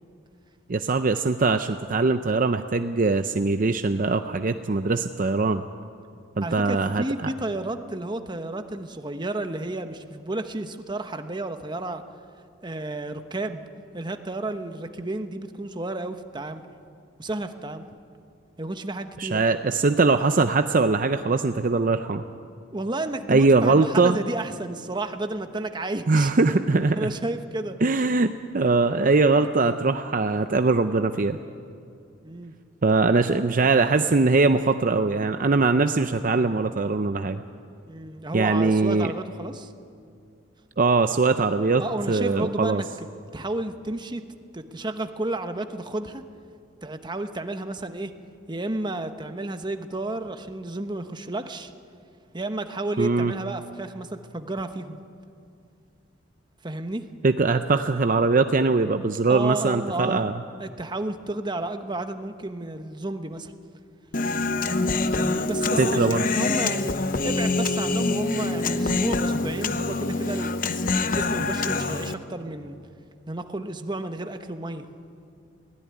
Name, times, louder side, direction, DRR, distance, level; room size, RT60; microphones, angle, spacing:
voice 1, 0.7-5.6 6.4-7.0 19.2-22.2 23.3-24.2 26.1-27.1 27.8-31.4 32.8-37.4 38.3-39.1 40.8-41.8 42.1-42.8 53.0-53.3 57.2-60.3 65.8-66.2, right 3 dB, 45° right, 9 dB, 0.6 m, -21 dB
voice 2, 6.4-12.0 12.6-13.6 13.9-16.6 17.2-17.8 18.6-19.4 22.7-26.3 27.0-27.8 32.2-32.5 37.9-39.7 41.8-43.1 43.3-44.3 44.5-46.2 46.8-48.2 48.5-51.7 52.3-55.0 56.6-57.1 59.3-60.2 60.6-63.5 65.1-67.0 67.2-70.5 71.0-72.8 73.3-74.9, right 2 dB, 25° right, 8 dB, 1.1 m, -32 dB
Human voice, 64.1-72.1, left 3 dB, 45° left, 0.9 m, -25 dB
22.5 x 17.0 x 9.7 m, 2.4 s
head